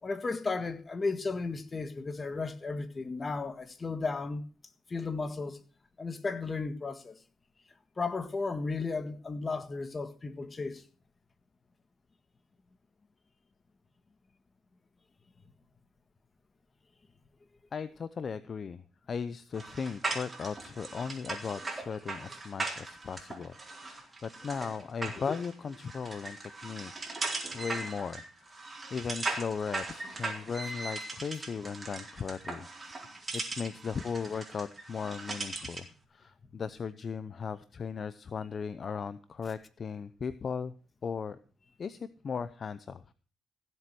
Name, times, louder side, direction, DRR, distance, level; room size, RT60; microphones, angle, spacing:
voice 1, 0.0-4.4 4.9-5.6 6.0-7.2 8.0-10.8, left 4 dB, 30° left, 1.7 m, -34 dB
voice 2, 17.7-26.9 27.5-32.7 33.3-40.7 41.0-41.4 41.8-43.0, left 6 dB, 45° left, 0.7 m, -37 dB
sound 1, 19.5-35.9, right 3 dB, 25° right, 4.0 m, -39 dB
16.0 x 7.8 x 6.1 m
cardioid pair, 90°, 0 cm